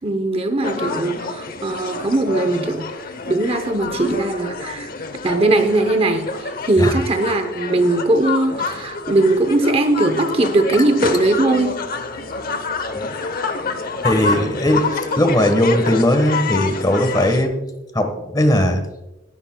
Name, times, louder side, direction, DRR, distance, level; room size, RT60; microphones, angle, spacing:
voice 1, 0.0-2.9 3.3-4.9 5.2-11.8, right 2 dB, 30° right, 7 dB, 0.7 m, -19 dB
sound 1, 0.6-17.5, left 4 dB, 45° left, 0.8 m, -28 dB
voice 2, 14.0-17.5 17.9-18.8, left 1 dB, 20° left, 6 dB, 1.2 m, -18 dB
17.5 x 10.5 x 2.2 m, 0.98 s
head